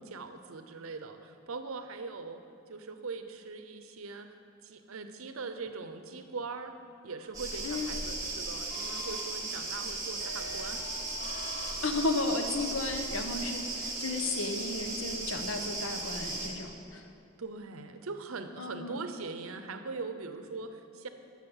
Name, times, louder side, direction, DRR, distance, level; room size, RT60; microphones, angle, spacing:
voice 1, 0.0-2.4 2.7-4.3 4.6-6.7 7.0-10.9 17.4-21.1, right 4 dB, 90° right, 8 dB, 0.7 m, -41 dB
sound 1, 7.2-7.7 8.7-9.7 10.2-12.3, left 1 dB, 40° left, 0.9 m, -46 dB
sound 2, 7.3-16.5, right 2 dB, 15° right, 1.6 m, -36 dB
voice 2, 11.8-17.1 18.6-19.1, left 2 dB, 75° left, 5 dB, 0.9 m, -33 dB
11.0 x 6.3 x 7.1 m, 2.6 s
head